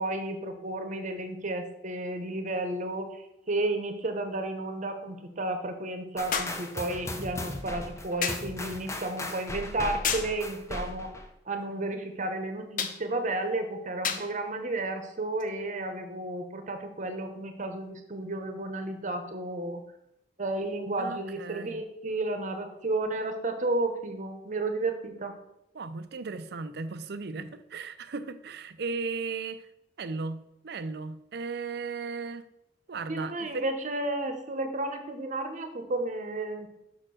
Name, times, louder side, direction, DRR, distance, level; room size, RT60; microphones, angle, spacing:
voice 1, 0.0-11.1 11.5-19.8 20.4-25.3 33.1-36.7, right 2 dB, 45° right, 1.0 m, -32 dB
sound 1, 2.5-2.6 6.3-6.7 8.2-8.5 10.0-10.4 12.8-13.0 14.0-14.3 15.4-15.5, left 6 dB, 50° left, 0.7 m, -30 dB
sound 2, 6.2-11.3, left 1 dB, 15° left, 0.7 m, -38 dB
voice 2, 21.0-21.8 25.7-29.7 30.0-32.4 32.9-33.7, right 4 dB, 65° right, 0.5 m, -36 dB
6.1 x 4.4 x 6.3 m
head